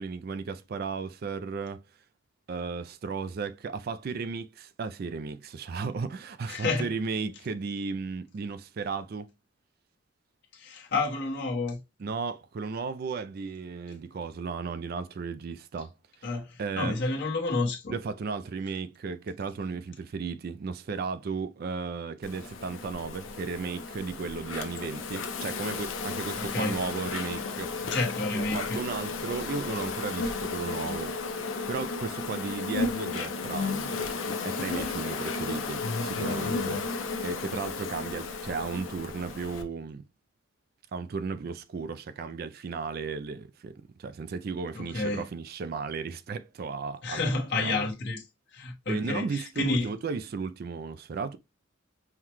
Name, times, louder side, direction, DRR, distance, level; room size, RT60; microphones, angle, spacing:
voice 1, 0.0-1.8 2.5-9.3 12.0-15.9 16.2-16.3 16.6-17.0 17.9-27.8 28.3-31.1 31.7-34.0 34.4-37.0 37.2-40.0 40.9-47.9 48.9-51.4, right 4 dB, 50° right, 0.3 m, -35 dB
voice 2, 6.5-6.9 10.5-11.8 16.2-17.9 26.4-26.8 27.9-28.8 44.7-45.2 47.0-48.2 48.5-49.9, left 3 dB, 55° left, 1.2 m, -30 dB
Insect, 22.2-39.6, left 4 dB, 75° left, 0.7 m, -33 dB
5.6 x 2.2 x 3.0 m
head